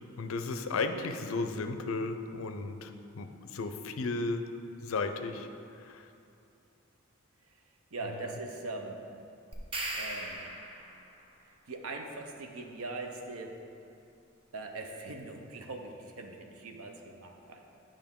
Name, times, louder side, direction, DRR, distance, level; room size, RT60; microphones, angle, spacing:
voice 1, 0.2-4.5 4.8-5.5 5.8-6.1 8.1-8.2, left 3 dB, 75° left, 8 dB, 0.5 m, -34 dB
voice 2, 7.9-9.0 9.9-10.5 11.7-13.5 14.5-17.6, right 3 dB, 85° right, 3 dB, 0.6 m, -41 dB
sound 1, 9.5-11.1, right 2 dB, 25° right, 0.7 m, -38 dB
9.1 x 5.1 x 3.6 m, 2.6 s
head